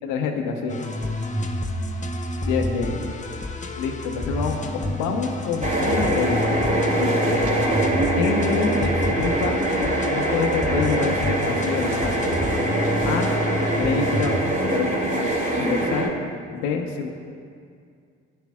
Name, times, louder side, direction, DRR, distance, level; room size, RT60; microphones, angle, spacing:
voice 1, 0.0-0.8 2.4-3.1 3.8-6.7 7.0-8.9 9.2-12.3 13.0-13.3 13.7-16.1 16.5-17.1, left 5 dB, 85° left, 4 dB, 1.0 m, -27 dB
sound 1, 0.7-14.4, left 1 dB, 25° left, 1.0 m, -29 dB
sound 2, 5.6-16.1, right 1 dB, 25° right, 2.4 m, -23 dB
15.0 x 10.0 x 2.4 m, 2.3 s
hypercardioid pair, 60°, 31 cm